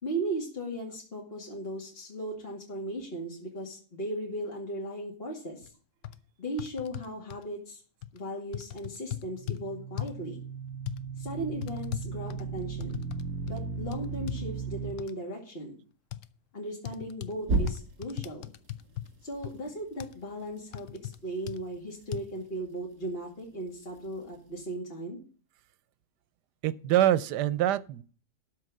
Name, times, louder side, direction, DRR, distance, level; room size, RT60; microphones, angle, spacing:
voice 1, 0.0-5.7 6.4-7.8 8.1-10.4 11.2-13.0 13.5-15.7 16.5-18.5 19.2-25.2, right 1 dB, 35° left, 2.5 m, -37 dB
sound 1, 5.6-5.7 6.0-6.2 6.6-7.4 8.0-8.2 8.5-9.6 10.0-10.2 10.9-11.0 11.6-13.2 13.5-13.6 13.9-14.4 15.0-15.1 16.1-16.3 16.8-17.3 17.7-19.1 19.4-19.5 20.0-20.2 20.7-21.2 21.5-21.6 22.1-22.2, left 13 dB, 65° left, 0.8 m, -37 dB
sound 2, 9.1-14.9 17.4-18.2, right 4 dB, 60° right, 2.6 m, -34 dB
voice 2, 26.6-28.0, right 12 dB, 85° right, 1.3 m, -25 dB
12.5 x 4.6 x 7.6 m
omnidirectional pair, 1.7 m